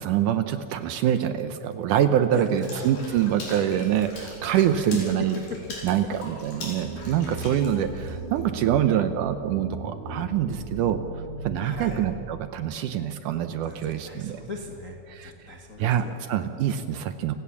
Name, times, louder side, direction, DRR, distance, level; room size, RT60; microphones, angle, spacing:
voice 1, 0.0-5.3 5.8-11.0 11.4-14.4 15.1-15.3 15.8-17.4, right 10 dB, 75° right, 10 dB, 2.1 m, -25 dB
voice 2, 2.3-3.0 4.5-5.0 5.5-5.6 7.2-7.3 11.6-12.0 13.6-14.9 15.2-16.2, left 3 dB, 40° left, 1 dB, 1.1 m, -38 dB
Water / Splash splatter, 2.6-8.4, left 2 dB, 70° left, 6.9 m, -42 dB
sound 1, 6.8-12.2, right 2 dB, 60° right, 4.2 m, -37 dB
29.5 x 17.0 x 7.2 m, 2.6 s
omnidirectional pair, 4.2 m